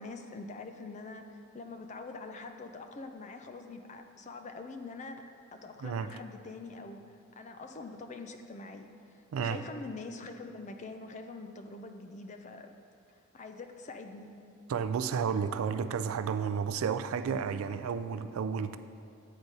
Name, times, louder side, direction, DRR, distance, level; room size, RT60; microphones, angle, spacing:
voice 1, 0.0-5.3 5.5-7.0 7.4-12.7 13.1-14.4, left 3 dB, 35° left, 6 dB, 0.4 m, -44 dB
voice 2, 14.7-18.8, right 6 dB, 80° right, 11 dB, 0.3 m, -32 dB
9.0 x 4.0 x 4.7 m, 2.4 s
head